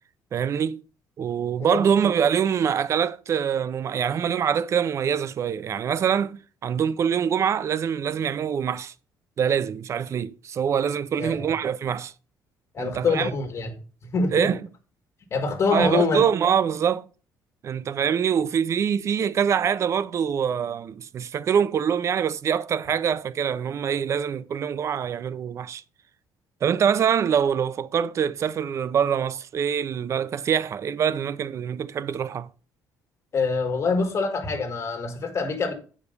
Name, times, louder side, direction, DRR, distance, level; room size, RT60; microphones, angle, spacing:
voice 1, 0.3-0.8 1.2-8.9 9.4-12.1 12.8-13.3 14.3-14.6 15.7-17.1 17.6-25.8 26.6-32.5, right 8 dB, 40° right, 0.5 m, -24 dB
voice 2, 11.1-11.5 12.7-13.7 14.0-14.5 15.3-16.2 33.3-35.7, left 4 dB, 35° left, 1.8 m, -25 dB
8.1 x 5.1 x 5.3 m
cardioid pair, 135°, 8 cm